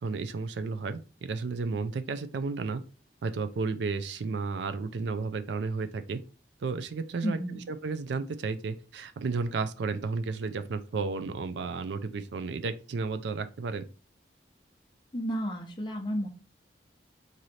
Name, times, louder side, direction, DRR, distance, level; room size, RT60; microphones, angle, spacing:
voice 1, 0.0-2.8 3.2-6.2 6.6-13.8, right 4 dB, 75° right, 0.4 m, -33 dB
voice 2, 7.2-7.6 15.1-16.3, equal, 25° left, 0.6 m, -32 dB
3.1 x 2.6 x 4.0 m
head